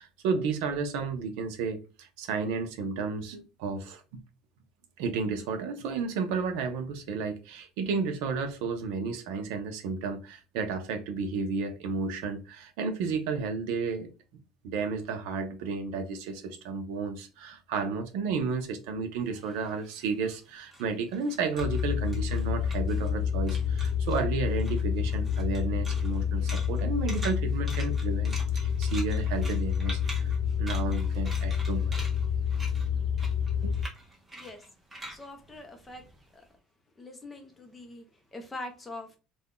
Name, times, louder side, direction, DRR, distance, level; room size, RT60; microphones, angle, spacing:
voice 1, 0.0-4.0 5.0-14.1 14.6-30.3 30.6-32.0 33.6-33.7, right 5 dB, 75° right, 0.6 m, -32 dB
sound 1, 19.3-23.2 23.5-24.2 24.6-36.4, right 1 dB, 15° right, 0.9 m, -45 dB
sound 2, 21.6-33.8, left 7 dB, 65° left, 0.7 m, -28 dB
voice 2, 34.3-34.6 35.1-36.1 36.3-36.4 37.0-39.2, left 2 dB, 10° left, 0.6 m, -43 dB
2.5 x 2.3 x 3.6 m
cardioid pair, 160°, 0 cm